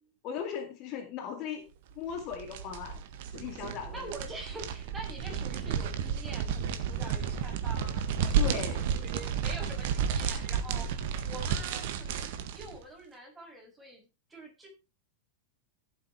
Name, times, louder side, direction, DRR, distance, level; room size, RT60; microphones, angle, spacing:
voice 1, 0.2-1.6 2.0-3.0 3.3-4.1 8.4-8.8, left 8 dB, 40° left, 6 dB, 2.2 m, -37 dB
sound 1, 2.1-12.8, right 7 dB, 50° right, 1.7 m, -32 dB
voice 2, 3.9-10.9 11.2-14.7, right 2 dB, 10° right, 1 dB, 6.6 m, -45 dB
15.5 x 8.6 x 3.5 m, 0.28 s
figure-of-eight pair, 90°, 0 cm